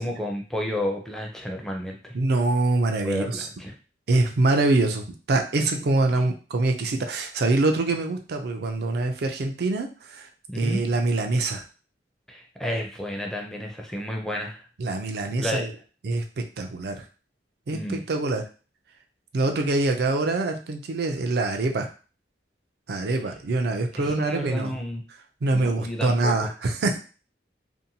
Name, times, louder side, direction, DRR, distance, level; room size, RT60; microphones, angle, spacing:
voice 1, 0.0-2.1 3.0-3.7 10.5-10.8 12.3-14.6 15.4-15.6 17.7-18.0 23.9-25.0 25.5-26.5, equal, 5° left, 1 dB, 0.5 m, -31 dB
voice 2, 2.1-3.5 4.1-10.3 10.5-11.6 14.8-15.7 16.0-16.2 16.6-17.0 17.7-18.5 19.3-21.9 22.9-24.8 25.4-27.0, right 2 dB, 60° right, 4 dB, 0.4 m, -24 dB
2.7 x 2.1 x 2.7 m, 0.36 s
head